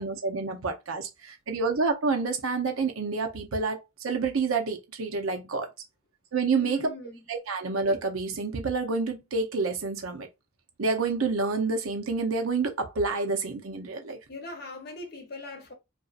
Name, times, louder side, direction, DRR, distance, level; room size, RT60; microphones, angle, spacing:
voice 1, 0.0-5.7 6.3-6.8 7.3-10.3 10.8-14.2, right 4 dB, 90° right, 0.7 m, -28 dB
voice 2, 6.5-7.2 14.3-15.7, left 2 dB, 50° left, 0.7 m, -40 dB
2.6 x 2.4 x 2.4 m
head